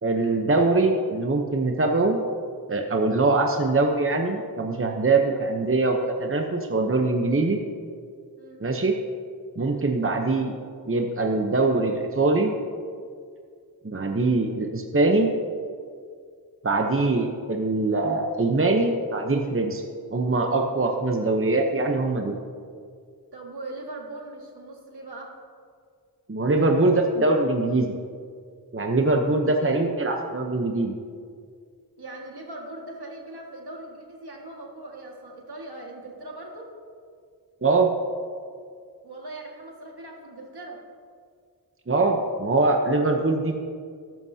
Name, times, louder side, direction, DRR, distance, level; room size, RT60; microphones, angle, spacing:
voice 1, 0.0-2.2 2.7-7.6 8.6-8.9 9.6-10.5 10.9-12.5 13.8-15.3 16.6-19.8 20.1-22.4 26.3-27.9 28.7-30.9 37.6-37.9 41.9-43.5, right 3 dB, 35° right, 3 dB, 0.9 m, -23 dB
voice 2, 23.3-25.3 29.5-29.8 32.0-36.7 39.0-40.8, right 2 dB, 75° right, -1 dB, 1.9 m, -40 dB
13.5 x 12.0 x 2.8 m, 2.1 s
wide cardioid pair, 55°, 38 cm